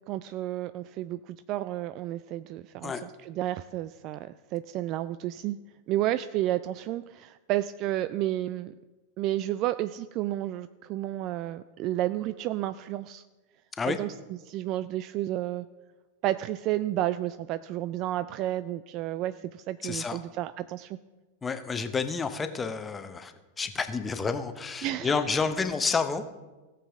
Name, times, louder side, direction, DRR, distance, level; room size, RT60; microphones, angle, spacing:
voice 1, 0.1-5.6 5.9-8.7 9.2-13.2 13.9-14.1 14.4-15.7 16.2-21.0 24.8-25.2, right 14 dB, 40° right, 13 dB, 0.3 m, -31 dB
voice 2, 19.8-20.2 21.4-26.3, left 5 dB, 15° left, 9 dB, 0.8 m, -30 dB
17.5 x 7.0 x 3.6 m, 1.2 s
figure-of-eight pair, 90°, 0 cm